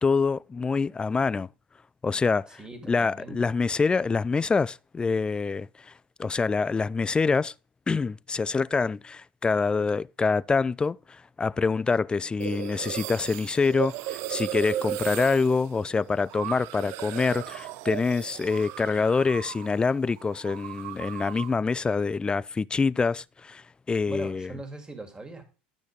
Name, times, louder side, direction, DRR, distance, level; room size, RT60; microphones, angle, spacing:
voice 1, 0.0-1.5 2.0-2.6 2.9-5.9 6.2-7.5 7.9-24.5, left 4 dB, 20° left, 0.3 m, -26 dB
voice 2, 2.5-3.5 24.1-25.5, right 2 dB, 15° right, 2.6 m, -40 dB
sound 1, 12.4-19.8 20.1-21.6, right 13 dB, 65° right, 0.5 m, -36 dB
12.0 x 6.1 x 3.3 m
hypercardioid pair, 80°, 5 cm